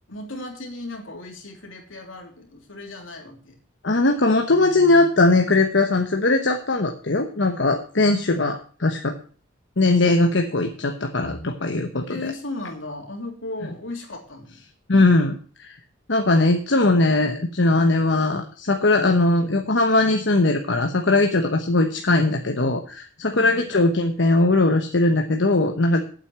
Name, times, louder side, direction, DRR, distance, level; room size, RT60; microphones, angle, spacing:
voice 1, 0.1-3.6 12.0-14.6 23.3-23.7, left 2 dB, 80° left, 2 dB, 3.1 m, -36 dB
voice 2, 3.8-9.2 9.8-12.2 14.9-15.8 16.1-26.0, left 2 dB, 65° left, 5 dB, 1.0 m, -20 dB
9.0 x 8.1 x 7.4 m, 0.42 s
head